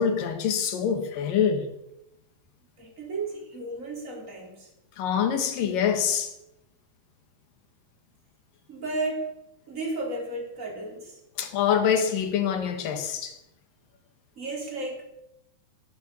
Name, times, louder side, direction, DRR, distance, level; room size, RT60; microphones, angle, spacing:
voice 1, 0.0-1.7 5.0-6.3 11.4-13.4, left 7 dB, 65° left, 3.3 m, -25 dB
voice 2, 2.8-4.7 8.7-9.3 9.7-11.2 14.4-15.0, right 2 dB, 20° right, 4.3 m, -33 dB
15.0 x 11.5 x 7.2 m
omnidirectional pair, 4.3 m